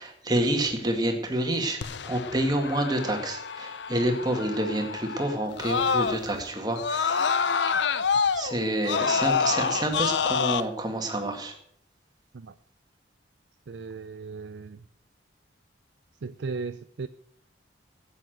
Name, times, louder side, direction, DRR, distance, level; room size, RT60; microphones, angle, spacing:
voice 1, 0.0-7.3 8.3-11.6, right 1 dB, 20° right, 3 dB, 2.0 m, -28 dB
Screaming, 1.8-6.4 6.8-10.6, left 6 dB, 65° left, 0.6 m, -27 dB
voice 2, 13.7-14.8 16.2-17.1, right 4 dB, 65° right, 10 dB, 0.5 m, -36 dB
12.0 x 8.6 x 7.8 m, 0.67 s
head